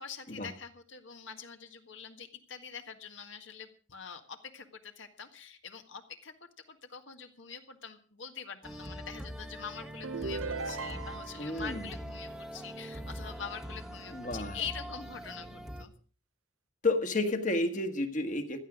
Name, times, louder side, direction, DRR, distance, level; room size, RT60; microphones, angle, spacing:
voice 1, 0.0-6.3 6.7-15.9, left 6 dB, 65° left, 6 dB, 1.7 m, -44 dB
sound 1, 8.6-15.8, equal, 5° right, 1.1 m, -43 dB
sound 2, 10.0-11.5, right 4 dB, 85° right, 0.8 m, -37 dB
voice 2, 11.4-11.9 14.1-14.6 16.8-18.6, left 2 dB, 40° left, 7 dB, 1.7 m, -31 dB
16.5 x 12.5 x 5.1 m, 0.39 s
head